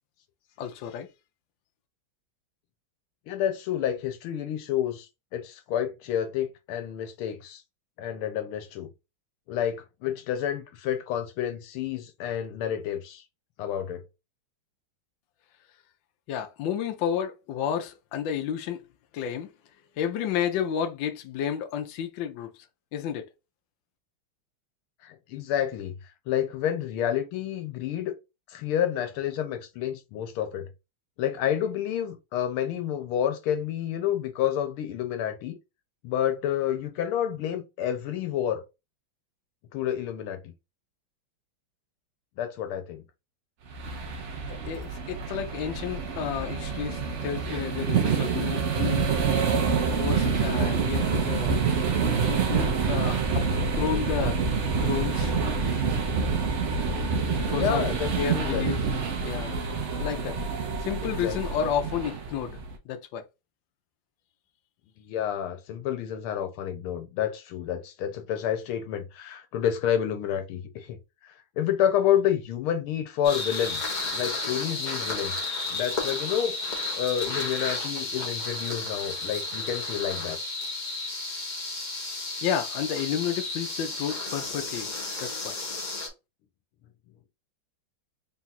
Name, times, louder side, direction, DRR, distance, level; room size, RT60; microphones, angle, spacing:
voice 1, 0.6-1.1 16.3-18.8 19.1-19.5 20.0-22.5 22.9-23.3 44.5-49.1 49.5-49.7 50.0-52.0 52.3-53.4 53.8-54.4 54.8-55.3 57.3-57.8 58.2-58.8 59.2-59.6 60.0-60.5 60.8-62.6 62.8-63.2 82.4-84.9 85.2-85.5, left 9 dB, 70° left, 1.3 m, -31 dB
voice 2, 3.3-7.6 8.0-8.9 9.5-13.2 13.6-14.0 25.0-25.9 26.3-28.1 28.5-30.7 31.2-35.6 36.0-38.6 39.7-40.5 42.4-43.0 51.0-51.1 57.5-59.0 61.0-61.4 65.0-71.0 71.2-75.4 75.7-76.5 76.9-80.4, left 10 dB, 90° left, 1.6 m, -29 dB
sound 1, 43.7-62.8, right 5 dB, 70° right, 0.6 m, -27 dB
sound 2, 73.2-86.1, left 3 dB, 45° left, 0.6 m, -32 dB
3.9 x 2.4 x 4.1 m
omnidirectional pair, 2.3 m